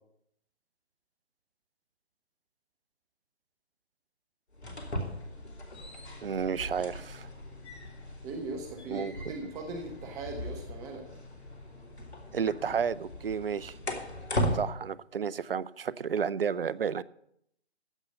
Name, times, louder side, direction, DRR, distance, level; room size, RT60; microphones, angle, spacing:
sound 1, 4.5-14.6, equal, 75° left, 3.4 m, -38 dB
voice 1, 6.2-7.3 8.9-9.4 12.3-13.8 14.5-17.0, right 7 dB, 55° right, 0.7 m, -32 dB
voice 2, 8.2-11.1, right 3 dB, 10° right, 1.0 m, -39 dB
15.5 x 5.6 x 9.1 m
figure-of-eight pair, 145°, 33 cm